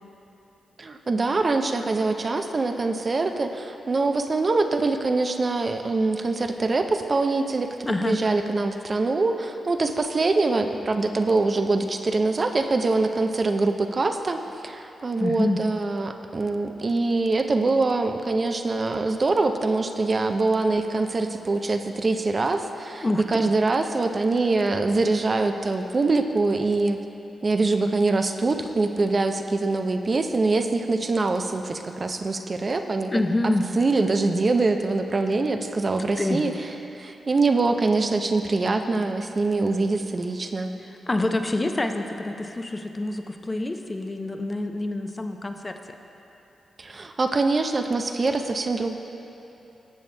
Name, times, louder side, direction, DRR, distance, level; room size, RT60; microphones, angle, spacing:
voice 1, 0.8-7.8 8.0-27.0 27.4-33.1 33.8-36.5 36.9-40.7 46.8-49.0, right 3 dB, 45° right, 6 dB, 0.5 m, -24 dB
voice 2, 7.9-8.2 15.2-15.6 23.0-23.5 33.1-33.7 35.9-36.4 40.9-46.0, left 2 dB, 30° left, 6 dB, 0.6 m, -27 dB
14.0 x 7.2 x 2.2 m, 2.9 s
cardioid pair, 60°, 0 cm